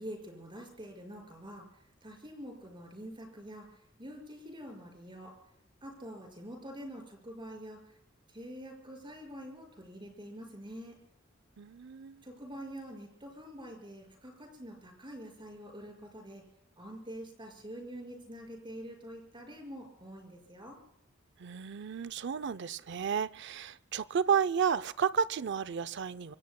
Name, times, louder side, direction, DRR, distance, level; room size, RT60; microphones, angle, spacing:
voice 1, 0.0-1.7 2.0-5.4 5.8-7.9 8.3-11.0 12.2-16.4 16.8-20.8, equal, 25° right, 1 dB, 5.3 m, -46 dB
voice 2, 11.6-12.2 21.4-26.3, right 7 dB, 60° right, 14 dB, 0.5 m, -32 dB
26.0 x 25.0 x 2.2 m, 0.73 s
head